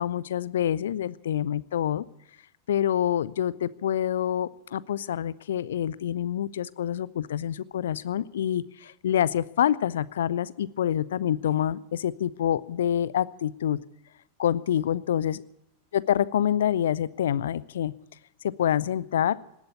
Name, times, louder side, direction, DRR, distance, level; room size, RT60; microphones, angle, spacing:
voice 1, 0.0-2.0 2.7-13.8 14.4-15.4 15.9-17.9 18.4-19.3, left 10 dB, 60° left, 20 dB, 0.5 m, -26 dB
19.0 x 8.0 x 9.5 m, 0.86 s
figure-of-eight pair, 90°, 0 cm